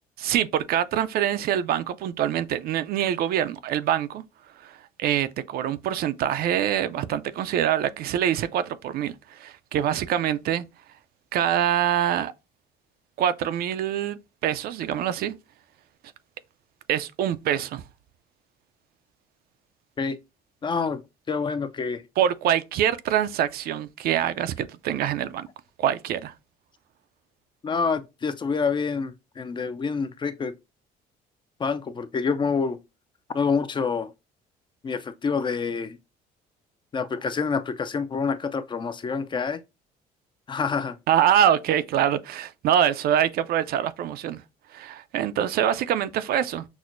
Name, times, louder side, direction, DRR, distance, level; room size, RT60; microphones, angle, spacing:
voice 1, 0.2-4.2 4.6-10.6 11.3-12.3 13.2-15.3 16.9-17.8 22.2-25.5 25.8-26.3 41.1-44.4 44.7-46.6, right 10 dB, 65° right, 0.4 m, -25 dB
voice 2, 20.6-21.0 21.3-22.0 27.6-30.5 31.6-32.8 33.3-34.1 34.8-36.0 36.9-39.6 40.5-41.0, left 5 dB, 30° left, 0.4 m, -27 dB
6.0 x 2.1 x 2.5 m
cardioid pair, 110°, 17 cm